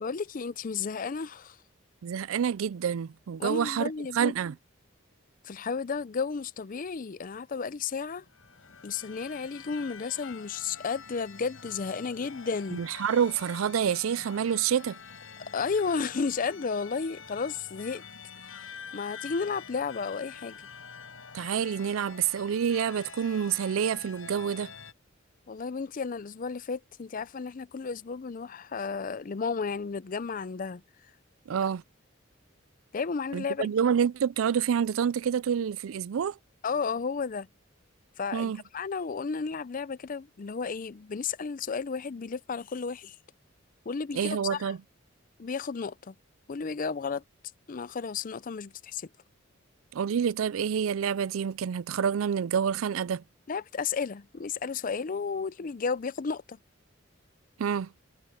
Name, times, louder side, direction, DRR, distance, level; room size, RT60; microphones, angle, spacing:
voice 1, 0.0-1.6 3.4-4.3 5.4-8.2 8.8-12.8 15.4-18.0 18.4-20.6 25.5-30.8 32.9-33.7 36.6-37.5 38.2-43.2 43.9-44.7 45.4-46.1 46.5-47.2 47.7-49.1 53.5-56.6, left 5 dB, 40° left, 0.5 m, -33 dB
voice 2, 2.0-4.5 12.7-15.0 21.3-24.7 31.5-31.8 33.3-36.3 38.3-38.6 44.1-44.8 49.9-53.2 57.6-57.9, right 7 dB, 80° right, 0.4 m, -28 dB
sound 1, 8.2-24.9, left 6 dB, 90° left, 4.3 m, -46 dB
head